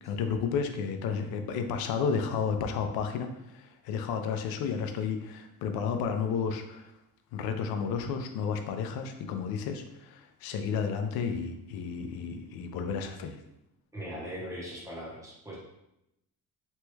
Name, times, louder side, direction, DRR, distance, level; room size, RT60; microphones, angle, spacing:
voice 1, 0.0-6.9 7.3-13.4, left 6 dB, 80° left, 7 dB, 0.5 m, -32 dB
voice 2, 13.9-15.5, equal, 10° right, -6 dB, 0.6 m, -39 dB
3.0 x 2.2 x 3.1 m, 0.84 s
cardioid pair, 180°, 37 cm